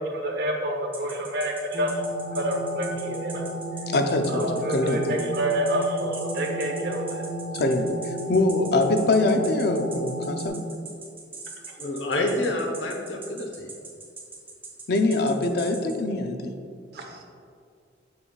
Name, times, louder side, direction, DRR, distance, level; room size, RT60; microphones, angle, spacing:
voice 1, 0.0-2.0 2.3-3.4 4.3-7.2 11.7-11.8 16.9-17.2, right 1 dB, 60° right, 1 dB, 0.9 m, -28 dB
sound 1, 0.9-16.0, right 3 dB, 10° right, 1.0 m, -41 dB
sound 2, 1.7-10.5, right 1 dB, 25° right, 1.5 m, -34 dB
voice 2, 3.9-5.2 7.5-10.6 14.9-16.5, left 2 dB, 60° left, 5 dB, 0.5 m, -23 dB
voice 3, 11.8-13.7, left 1 dB, 80° left, 1 dB, 0.9 m, -28 dB
6.9 x 6.9 x 2.4 m, 2.3 s
head